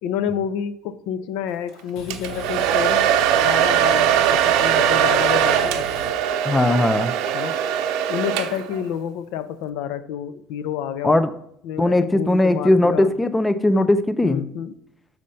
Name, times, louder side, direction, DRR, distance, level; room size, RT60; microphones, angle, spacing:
voice 1, 0.0-6.1 7.3-7.6 8.1-11.2 11.6-13.1 14.2-14.7, left 9 dB, 90° left, 14 dB, 0.5 m, -29 dB
sound 1, 1.7-6.9, left 1 dB, 70° left, 1.3 m, -39 dB
Domestic sounds home sounds, 2.1-8.8, right 10 dB, 80° right, 0.6 m, -20 dB
Wind instrument woodwind instrument, 4.4-8.4, right 7 dB, 45° right, 0.7 m, -36 dB
voice 2, 6.4-7.1 11.0-11.3 11.8-14.4, left 1 dB, 10° left, 12 dB, 0.4 m, -18 dB
6.3 x 4.4 x 5.5 m, 0.69 s
cardioid pair, 165°, 0 cm